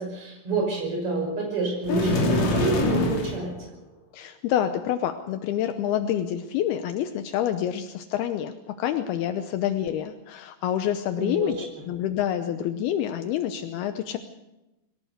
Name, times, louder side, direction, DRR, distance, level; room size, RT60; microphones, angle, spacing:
voice 1, 0.0-3.5 11.2-11.8, right 3 dB, 35° right, 1 dB, 6.4 m, -28 dB
sound 1, 1.8-3.4, left 2 dB, 45° left, 3.9 m, -24 dB
voice 2, 4.1-14.2, left 10 dB, 80° left, 8 dB, 2.8 m, -27 dB
23.0 x 18.0 x 6.6 m, 0.98 s
omnidirectional pair, 4.6 m